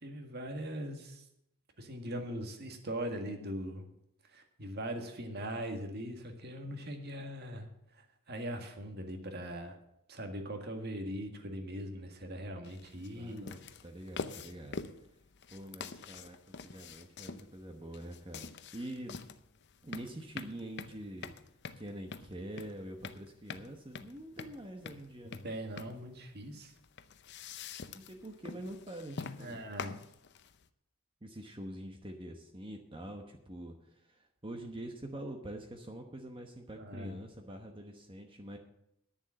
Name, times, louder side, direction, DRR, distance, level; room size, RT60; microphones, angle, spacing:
voice 1, 0.0-1.2 1.8-3.8 4.3-7.7 7.9-9.8 10.1-13.5 25.2-26.7 29.4-30.0 36.8-37.2, equal, 50° right, 5 dB, 1.8 m, -40 dB
sound 1, 12.6-30.7, left 5 dB, 55° left, 0.6 m, -46 dB
voice 2, 13.1-14.8 15.5-18.5 18.7-19.2 19.8-21.3 21.8-25.4 27.9-29.7 31.2-38.6, right 1 dB, 25° right, 3 dB, 1.1 m, -45 dB
10.5 x 7.1 x 8.6 m, 0.80 s
head